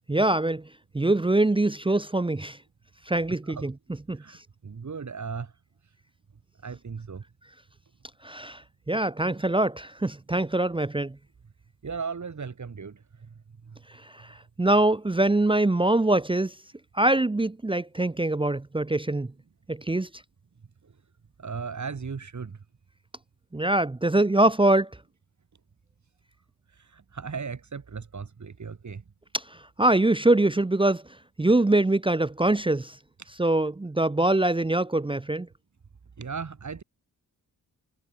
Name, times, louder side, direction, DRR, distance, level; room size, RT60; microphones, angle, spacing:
voice 1, 0.1-0.6 0.9-2.6 3.1-3.7 4.1-4.2 8.2-8.6 8.9-11.2 14.1-16.5 16.9-19.3 19.7-20.1 23.5-24.9 29.3-29.4 29.8-31.0 31.4-33.0 33.4-35.5, right 2 dB, 15° right, 0.8 m, -23 dB
voice 2, 4.1-5.5 6.6-7.2 11.8-13.3 13.6-13.8 14.3-14.4 20.8-20.9 21.4-22.6 26.7-29.0 36.2-36.8, right 5 dB, 50° right, 6.9 m, -37 dB
wide cardioid pair, 155°, 36 cm